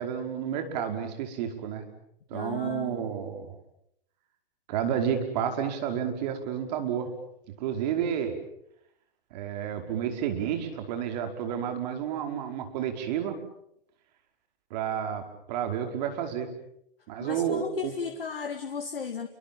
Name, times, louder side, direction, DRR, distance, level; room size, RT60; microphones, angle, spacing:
voice 1, 0.0-1.9 2.3-3.6 4.7-7.1 7.6-8.4 9.3-13.4 14.7-15.2 15.5-16.5 17.1-17.9, right 8 dB, 45° right, 5 dB, 5.3 m, -30 dB
voice 2, 2.3-3.0 17.2-19.3, left 6 dB, 80° left, 6 dB, 2.2 m, -35 dB
29.0 x 24.5 x 7.3 m, 0.74 s
hypercardioid pair, 120°, 29 cm